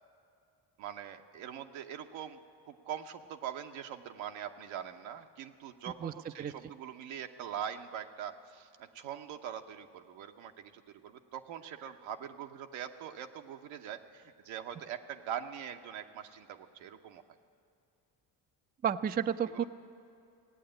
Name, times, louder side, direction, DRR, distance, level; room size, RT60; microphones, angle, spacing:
voice 1, 0.8-2.4 2.7-17.2 19.5-19.7, right 9 dB, 80° right, 6 dB, 1.0 m, -43 dB
voice 2, 6.0-6.5 18.8-19.6, right 8 dB, 20° right, 12 dB, 0.4 m, -32 dB
17.0 x 8.5 x 8.9 m, 2.6 s
supercardioid pair, 75°, 46 cm